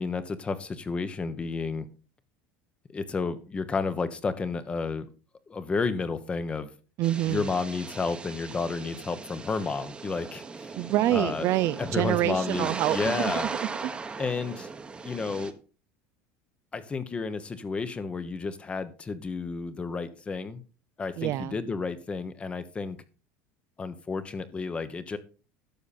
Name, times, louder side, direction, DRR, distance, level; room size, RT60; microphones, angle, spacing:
voice 1, 0.0-1.9 2.9-5.0 5.5-6.7 7.3-10.7 11.1-11.5 11.8-13.5 14.2-14.7 15.0-15.5 16.7-20.6 21.0-23.0 23.8-25.2, left 4 dB, 20° left, 1.1 m, -31 dB
sound 1, 7.0-15.5, right 4 dB, 15° right, 1.1 m, -38 dB
voice 2, 7.0-7.5 10.7-13.9 21.2-21.6, right 14 dB, 50° right, 0.5 m, -27 dB
12.0 x 7.1 x 4.3 m
supercardioid pair, 130°, 6 cm